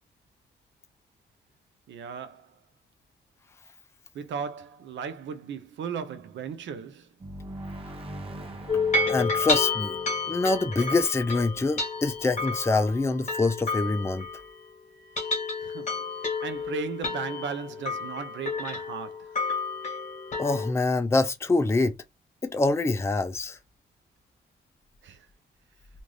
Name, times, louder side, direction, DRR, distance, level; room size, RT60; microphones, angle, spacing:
voice 1, 1.9-2.5 4.1-7.1 15.6-16.0 16.4-19.3 25.0-25.2, right 6 dB, 70° right, 0.6 m, -36 dB
sound 1, 7.2-11.8, right 1 dB, 30° right, 0.8 m, -42 dB
sound 2, 8.7-14.6 15.0-20.7, left 3 dB, 40° left, 1.3 m, -30 dB
voice 2, 9.1-10.0 10.3-14.3 20.4-22.0 22.4-23.6, left 3 dB, 15° left, 0.5 m, -25 dB
2.6 x 2.3 x 3.2 m
cardioid pair, 90°, 20 cm